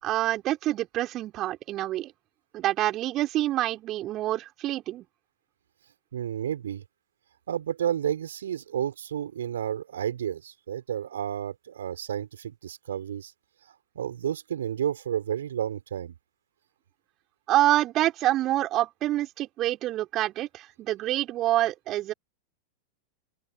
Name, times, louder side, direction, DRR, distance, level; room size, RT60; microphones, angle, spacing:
voice 1, 0.0-2.1 2.5-5.1 17.5-22.1, right 14 dB, 35° right, 5.8 m, -26 dB
voice 2, 6.1-6.8 7.5-13.3 13.9-16.1, right 9 dB, 65° right, 6.5 m, -31 dB
open air
figure-of-eight pair, 90°, 0 cm